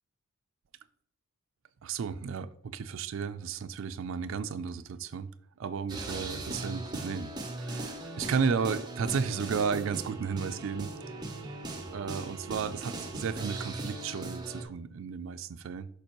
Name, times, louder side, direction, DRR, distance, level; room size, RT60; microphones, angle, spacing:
voice 1, 1.8-5.3 5.6-10.9 11.9-15.9, right 6 dB, 65° right, 0.4 m, -33 dB
sound 1, 5.9-14.6, right 2 dB, 20° right, 0.8 m, -39 dB
6.7 x 5.2 x 3.0 m
head